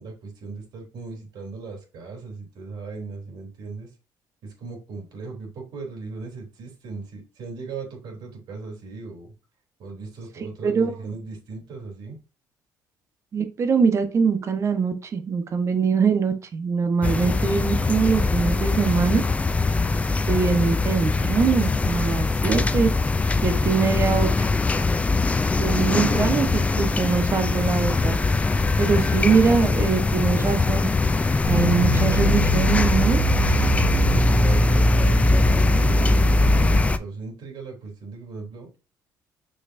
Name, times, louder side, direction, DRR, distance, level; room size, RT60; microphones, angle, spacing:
voice 1, 0.0-3.9 4.4-9.3 9.8-12.2 34.1-36.2 36.5-38.7, right 4 dB, 70° right, 0 dB, 3.5 m, -37 dB
voice 2, 10.4-10.9 13.3-19.2 20.3-22.9 23.4-24.3 25.6-28.1 28.8-30.9 31.5-33.2, right 5 dB, 40° right, 7 dB, 1.3 m, -23 dB
sound 1, 17.0-37.0, left 3 dB, 15° left, 0.5 m, -22 dB
sound 2, 31.5-36.8, right 1 dB, 5° right, 2.7 m, -22 dB
6.4 x 5.5 x 2.7 m, 0.33 s
cardioid pair, 115°, 8 cm